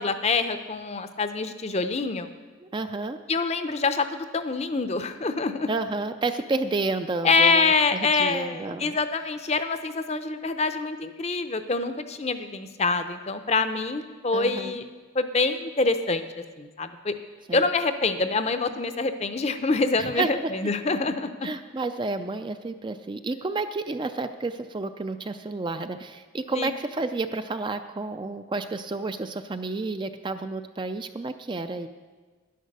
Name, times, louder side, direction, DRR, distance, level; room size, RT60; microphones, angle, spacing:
voice 1, 0.0-2.3 3.3-5.7 7.2-14.8 15.1-16.3 16.6-17.1 17.5-21.5 26.5-26.7, left 3 dB, 30° left, 10 dB, 0.6 m, -25 dB
voice 2, 2.6-3.2 5.7-9.0 14.3-14.8 17.5-17.6 20.0-20.5 21.4-31.9, right 3 dB, 25° right, 9 dB, 0.3 m, -30 dB
11.0 x 10.0 x 6.6 m, 1.4 s
head